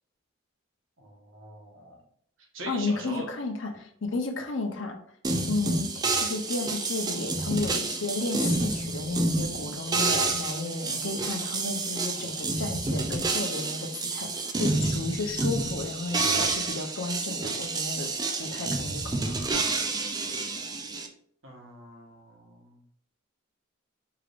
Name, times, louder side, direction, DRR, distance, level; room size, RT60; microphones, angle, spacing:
voice 1, 1.0-2.0 2.5-3.3 21.4-22.8, right 2 dB, 70° right, -1 dB, 1.2 m, -43 dB
voice 2, 2.7-5.0 5.5-5.9 6.2-18.1 18.4-19.5, left 3 dB, 65° left, 4 dB, 0.7 m, -33 dB
sound 1, 5.2-21.1, right 3 dB, 20° right, 0.4 m, -29 dB
4.8 x 3.3 x 2.5 m, 0.63 s
head